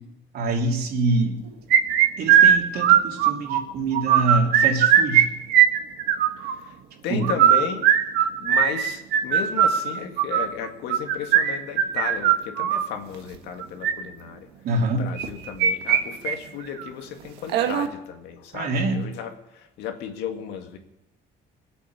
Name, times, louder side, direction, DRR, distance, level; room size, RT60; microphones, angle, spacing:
voice 1, 0.3-1.4 2.2-5.3 7.1-7.3 14.6-15.0 18.5-19.0, right 2 dB, 65° right, 1 dB, 3.0 m, -25 dB
sound 1, 1.7-3.6 3.9-5.2 5.5-6.5 7.2-12.9 13.6-13.9 15.2-16.0 16.3-16.4 16.8-16.9 17.5-17.9, right 10 dB, 85° right, 1.4 m, -18 dB
voice 2, 7.0-7.9 8.4-14.5 14.9-19.3 19.8-20.8, left 8 dB, 85° left, 5 dB, 2.0 m, -34 dB
21.0 x 8.5 x 7.3 m, 0.88 s
cardioid pair, 110°, 17 cm